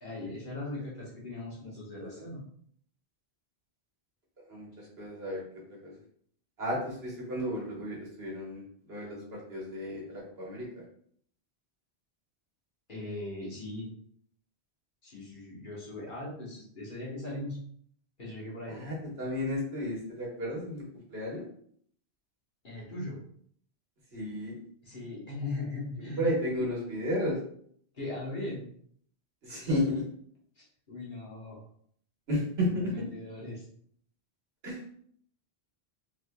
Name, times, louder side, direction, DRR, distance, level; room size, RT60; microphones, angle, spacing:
voice 1, 0.0-2.4 12.9-13.9 15.0-17.6 18.2-18.8 22.6-23.2 24.8-26.3 27.9-28.6 30.6-31.6 32.7-33.6, left 2 dB, 50° left, -5 dB, 1.3 m, -39 dB
voice 2, 4.5-5.4 5.8-5.9 6.6-8.6 8.9-10.7 18.7-21.4 24.1-24.5 26.2-27.4 29.4-30.0 32.3-32.9 34.6-34.9, left 1 dB, 70° right, -4 dB, 1.5 m, -33 dB
3.5 x 3.5 x 2.2 m, 0.63 s
omnidirectional pair, 1.1 m